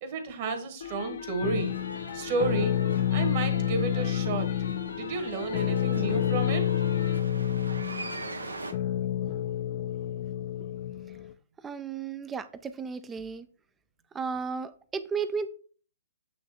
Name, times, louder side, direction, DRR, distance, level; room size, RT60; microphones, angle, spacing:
voice 1, 0.0-1.8 2.1-2.8 3.1-4.5 4.9-6.7, right 4 dB, 40° right, 7 dB, 1.4 m, -31 dB
sound 1, 0.8-7.2, left 8 dB, 60° left, 0.8 m, -39 dB
sound 2, 1.4-11.3, left 10 dB, 35° left, 0.5 m, -29 dB
sound 3, 1.5-8.7, right 2 dB, 80° right, 0.9 m, -43 dB
voice 2, 11.6-13.5 14.1-15.5, right 5 dB, 10° right, 12 dB, 0.5 m, -34 dB
8.4 x 3.3 x 4.1 m, 0.42 s
figure-of-eight pair, 125°, 0 cm